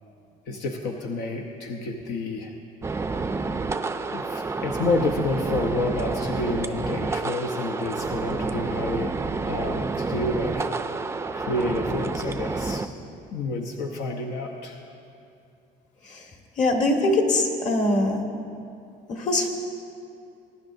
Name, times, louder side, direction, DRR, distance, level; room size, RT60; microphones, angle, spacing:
voice 1, 0.5-2.5 4.1-9.2 9.5-10.7 11.3-12.8 13.3-14.8, left 2 dB, 85° left, 2 dB, 0.9 m, -29 dB
sound 1, 2.8-12.9, right 4 dB, 15° right, 0.4 m, -29 dB
voice 2, 16.6-18.2 19.1-19.5, left 2 dB, 45° left, 2 dB, 1.6 m, -23 dB
22.0 x 10.5 x 2.7 m, 2.6 s
cardioid pair, 110°, 17 cm